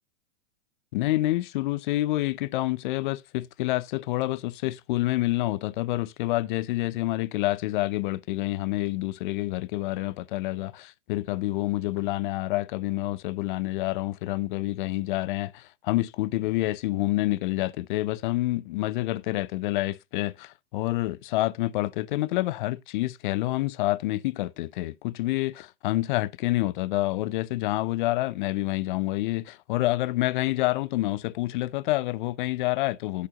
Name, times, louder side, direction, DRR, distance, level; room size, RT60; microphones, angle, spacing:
voice 1, 0.9-33.3, left 17 dB, 45° left, 0.5 m, -28 dB
12.0 x 5.4 x 2.9 m
hypercardioid pair, 130°, 36 cm